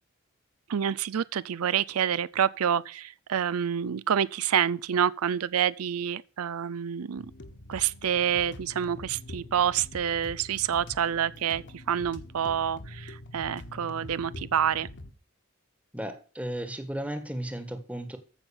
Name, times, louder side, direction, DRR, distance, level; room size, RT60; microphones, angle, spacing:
voice 1, 0.7-7.3 7.7-14.9, right 8 dB, 80° right, 0.5 m, -28 dB
sound 1, 7.2-15.1, left 1 dB, 55° left, 1.4 m, -44 dB
voice 2, 15.9-18.2, right 1 dB, 5° right, 1.4 m, -35 dB
14.0 x 5.7 x 7.0 m
head